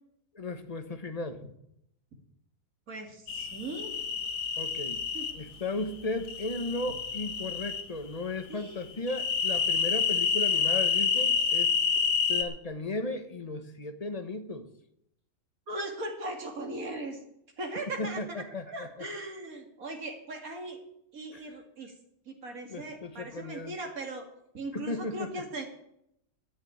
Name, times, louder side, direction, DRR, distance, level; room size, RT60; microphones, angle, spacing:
voice 1, 0.3-1.4 4.6-5.1 5.3-11.7 12.3-14.7 18.0-18.9 21.3-21.4 22.7-23.7 24.7-25.4, left 2 dB, 25° left, 1.0 m, -35 dB
voice 2, 2.9-3.9 5.1-5.3 8.5-8.9 15.7-17.2 17.6-20.8 21.1-21.9 22.3-24.2 24.5-25.7, right 2 dB, 60° right, 2.8 m, -39 dB
sound 1, 3.3-5.3 6.3-7.8 9.1-12.4, left 6 dB, 85° left, 1.9 m, -28 dB
11.0 x 9.1 x 9.1 m
omnidirectional pair, 1.7 m